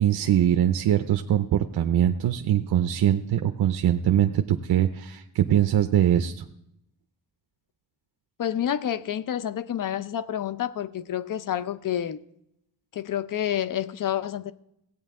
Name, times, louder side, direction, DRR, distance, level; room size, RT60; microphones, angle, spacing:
voice 1, 0.0-6.5, right 11 dB, 60° right, 0.6 m, -22 dB
voice 2, 8.4-12.2 12.9-14.5, left 10 dB, 50° left, 0.6 m, -29 dB
16.5 x 8.5 x 3.7 m
cardioid pair, 85°, 42 cm